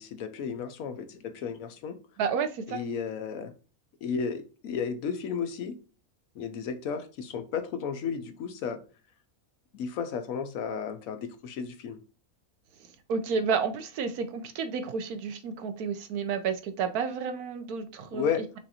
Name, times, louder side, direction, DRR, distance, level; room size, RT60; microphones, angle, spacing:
voice 1, 0.0-2.0 2.7-3.5 4.0-5.8 6.3-8.8 9.7-12.0 18.1-18.4, left 6 dB, 70° left, 1.1 m, -33 dB
voice 2, 2.2-2.8 13.1-18.3, right 6 dB, 85° right, 1.2 m, -31 dB
5.7 x 2.5 x 2.7 m
omnidirectional pair, 1.5 m